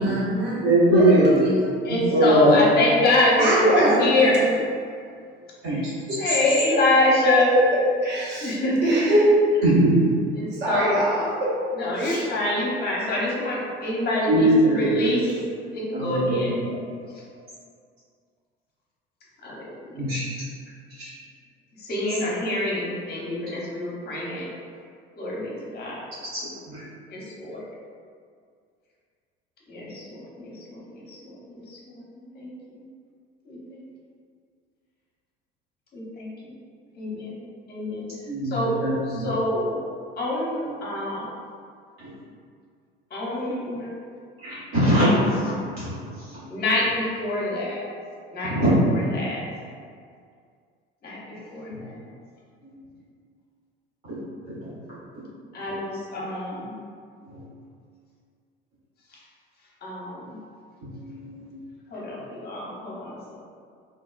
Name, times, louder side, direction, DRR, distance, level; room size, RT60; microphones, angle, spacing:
voice 1, 0.0-0.6 0.9-1.7 3.4-4.2 8.0-8.6 8.8-9.3 10.6-11.5 12.0-12.2, right 1 dB, 35° right, -6 dB, 0.8 m, -23 dB
voice 2, 0.6-2.6 5.6-5.8 9.6-9.9 14.3-15.4 15.9-16.6 19.9-20.2 21.0-21.1 26.3-26.8 38.3-38.6 38.8-39.3 42.0-42.1 44.4-46.6 48.4-48.7 52.6-52.7 54.0-54.2 54.6-54.7 57.2-57.4 60.9-61.5, right 1 dB, 75° right, -14 dB, 1.5 m, -22 dB
voice 3, 1.8-4.4 5.7-5.9 6.2-7.5 8.4-9.1 10.3-11.0 11.8-15.4 15.7-16.5 19.4-20.1 21.8-24.5 25.2-26.0 27.1-27.6 29.7-32.1 32.3-32.8 33.5-33.8 35.9-36.5 37.0-37.4 37.7-38.1 38.4-38.8 39.1-39.8 40.2-41.3 43.1-44.0 46.5-47.9 48.3-48.5 48.8-49.5 51.0-52.1 55.5-56.7 59.8-60.4 61.9-63.4, left 2 dB, 30° left, -5 dB, 0.8 m, -25 dB
2.7 x 2.3 x 2.2 m, 2.2 s
figure-of-eight pair, 60°, 30 cm